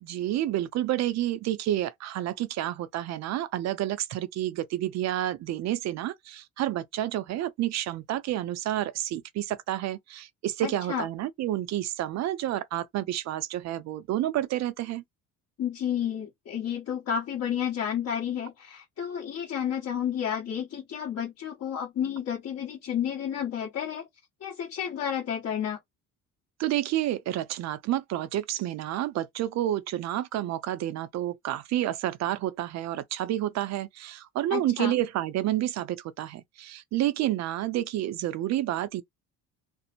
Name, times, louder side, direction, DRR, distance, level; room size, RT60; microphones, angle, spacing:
voice 1, 0.0-15.0 26.6-39.0, right 13 dB, 55° right, 0.5 m, -29 dB
voice 2, 10.6-11.1 15.6-24.1 24.4-25.8 34.5-34.9, left 9 dB, 50° left, 1.1 m, -31 dB
2.5 x 2.0 x 2.9 m
cardioid pair, 130°, 32 cm